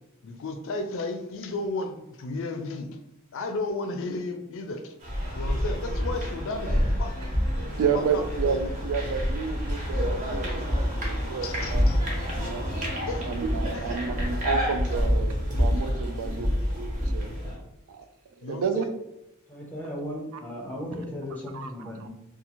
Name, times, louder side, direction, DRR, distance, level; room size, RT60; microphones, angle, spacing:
voice 1, 0.2-3.0 3.3-5.0 5.3-7.2 7.6-8.6 11.4-12.0 13.0-13.3 13.6-13.9 18.4-18.9, left 2 dB, 60° left, 6 dB, 0.4 m, -34 dB
sound 1, 5.0-17.5, equal, 35° right, 0.7 m, -27 dB
voice 2, 7.8-12.1 12.4-12.7 13.3-17.3 17.9-18.0 18.5-18.8 21.5-21.7 22.0-22.1, right 6 dB, 65° right, 7 dB, 0.3 m, -31 dB
voice 3, 19.5-22.1, left 1 dB, 10° left, -3 dB, 0.7 m, -36 dB
2.5 x 2.3 x 2.9 m, 0.88 s
head